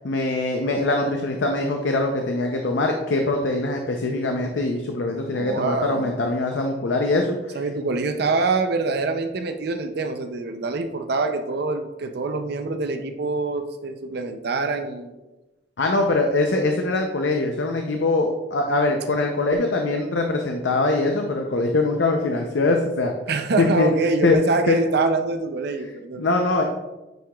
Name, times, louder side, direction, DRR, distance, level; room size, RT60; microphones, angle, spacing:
voice 1, 0.0-7.6 15.8-23.1 23.6-23.9 24.2-24.4 24.7-24.8 25.7-25.9 26.2-26.6, left 2 dB, 75° left, 3 dB, 0.6 m, -22 dB
voice 2, 5.3-6.2 7.5-15.1 23.3-26.2, right 3 dB, 60° right, 7 dB, 0.5 m, -25 dB
9.1 x 4.7 x 2.3 m, 1.1 s
head